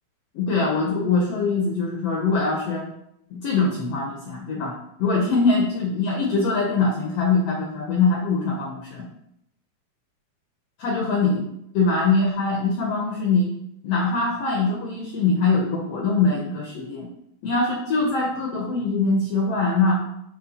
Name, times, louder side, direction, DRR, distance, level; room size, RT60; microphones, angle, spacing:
voice 1, 0.3-2.9 3.3-9.1 10.8-11.4 11.7-13.5 13.8-17.1 17.4-20.0, left 3 dB, 70° left, 0 dB, 1.5 m, -23 dB
8.5 x 3.1 x 4.1 m, 0.78 s
omnidirectional pair, 3.6 m